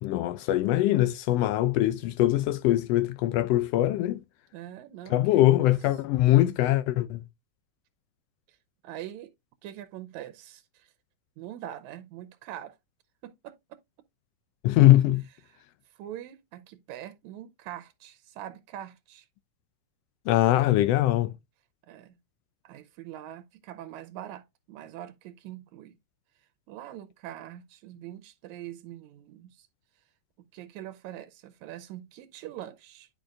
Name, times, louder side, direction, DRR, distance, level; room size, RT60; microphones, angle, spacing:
voice 1, 0.0-4.2 5.1-7.2 14.6-15.2 20.3-21.3, left 14 dB, 85° left, 1.4 m, -22 dB
voice 2, 4.5-5.7 8.5-8.6 8.8-9.3 9.6-10.9 11.4-12.8 13.2-13.8 15.4-15.6 15.9-19.3 21.9-22.2 22.6-26.0 26.7-29.7 30.5-33.1, right 12 dB, 90° right, 2.0 m, -43 dB
10.5 x 5.0 x 2.4 m
omnidirectional pair, 3.3 m